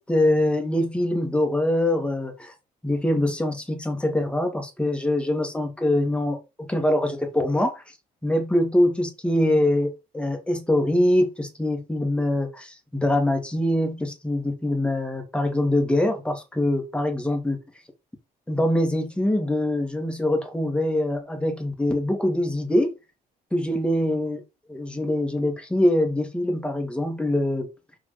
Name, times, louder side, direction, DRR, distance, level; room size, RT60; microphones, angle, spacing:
voice 1, 0.0-2.5 2.8-7.8 8.2-17.6 18.5-22.9 23.5-24.4 24.7-27.7, left 1 dB, 5° left, 2.3 m, -24 dB
6.2 x 5.1 x 5.1 m
cardioid pair, 110°, 17 cm